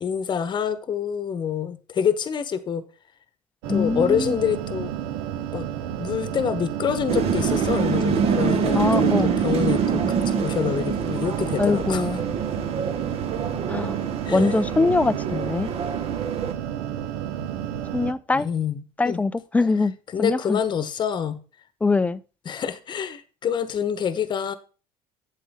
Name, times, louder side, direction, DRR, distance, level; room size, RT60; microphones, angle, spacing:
voice 1, 0.0-2.8 3.7-4.9 5.5-5.7 6.0-12.1 14.2-14.6 18.3-19.2 20.1-21.4 22.4-24.5, left 8 dB, 35° left, 1.0 m, -27 dB
sound 1, 3.6-18.1, right 10 dB, 90° right, 0.8 m, -31 dB
voice 2, 3.7-4.4 8.7-9.3 11.6-12.2 13.7-14.0 14.3-15.7 17.9-18.5 19.0-19.9 20.2-20.6 21.8-22.2, left 3 dB, 10° left, 0.4 m, -22 dB
sound 2, 7.1-16.5, right 6 dB, 50° right, 1.1 m, -25 dB
7.9 x 7.5 x 3.6 m
supercardioid pair, 105°, 13 cm